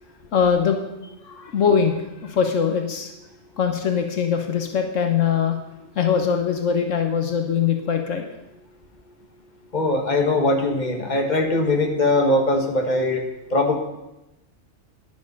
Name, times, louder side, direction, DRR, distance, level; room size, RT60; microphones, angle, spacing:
voice 1, 0.3-0.8 1.2-3.1 3.6-5.6 5.9-8.2, left 7 dB, 80° left, 4 dB, 1.4 m, -22 dB
voice 2, 9.7-13.2 13.5-13.8, left 2 dB, 35° left, 3 dB, 1.5 m, -21 dB
10.5 x 10.5 x 5.4 m, 0.95 s
omnidirectional pair, 1.3 m